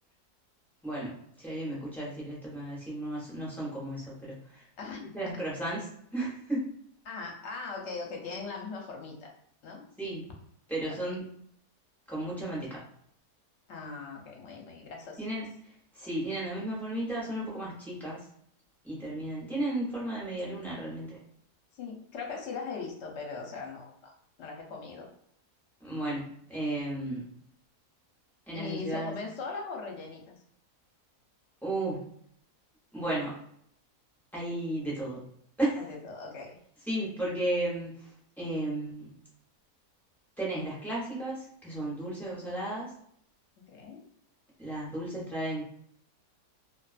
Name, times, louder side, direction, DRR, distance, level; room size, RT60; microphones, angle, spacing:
voice 1, 0.8-4.7 5.1-5.8 6.1-6.6 10.0-10.2 10.7-11.2 12.1-12.8 15.2-15.5 15.9-18.2 18.8-21.1 25.8-27.2 28.5-29.1 31.6-32.1 32.9-33.3 34.3-35.2 35.6-35.8 36.9-38.1 38.4-39.1 40.4-42.9 44.6-45.6, right 1 dB, ahead, -7 dB, 0.5 m, -34 dB
voice 2, 4.8-5.3 7.0-9.3 9.6-9.8 10.9-11.0 13.7-15.2 21.7-23.9 24.4-25.1 28.5-30.3 35.8-36.6 43.7-44.0, left 4 dB, 60° left, 0 dB, 0.8 m, -40 dB
2.4 x 2.4 x 2.4 m, 0.67 s
omnidirectional pair, 1.7 m